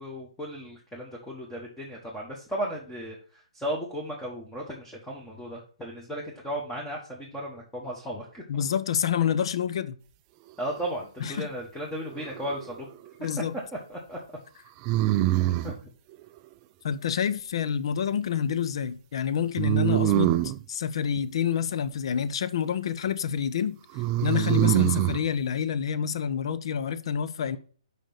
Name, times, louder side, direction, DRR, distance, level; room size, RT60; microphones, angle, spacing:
voice 1, 0.0-8.4 10.6-12.9 13.2-13.3 13.9-14.2 15.4-15.7, equal, 5° left, 1.2 m, -35 dB
voice 2, 8.5-10.0 11.2-11.5 13.2-13.5 16.8-20.3 20.7-23.8 24.2-27.6, left 8 dB, 50° left, 0.6 m, -28 dB
sound 1, 12.1-12.8 14.8-15.8 19.6-20.6 23.9-25.2, right 15 dB, 25° right, 0.3 m, -24 dB
5.1 x 5.1 x 5.8 m
figure-of-eight pair, 140°, 3 cm